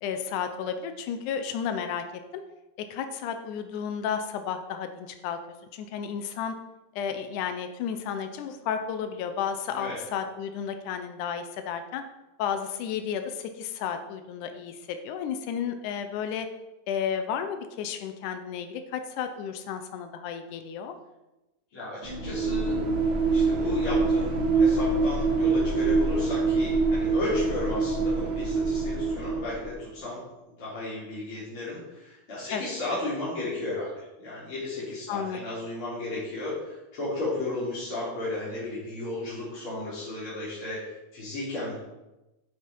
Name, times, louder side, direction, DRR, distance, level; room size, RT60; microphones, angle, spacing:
voice 1, 0.0-2.0 2.3-2.4 2.8-5.4 5.7-6.5 7.0-12.0 12.4-16.5 16.9-21.0 32.5-32.6 35.1-35.6, left 7 dB, 85° left, 7 dB, 2.3 m, -32 dB
voice 2, 21.7-22.8 23.3-30.2 30.6-41.8, left 2 dB, 45° left, -10 dB, 3.9 m, -34 dB
sound 1, 22.0-29.8, right 3 dB, 50° right, 1.7 m, -25 dB
9.1 x 8.4 x 4.5 m, 1.0 s
omnidirectional pair, 3.5 m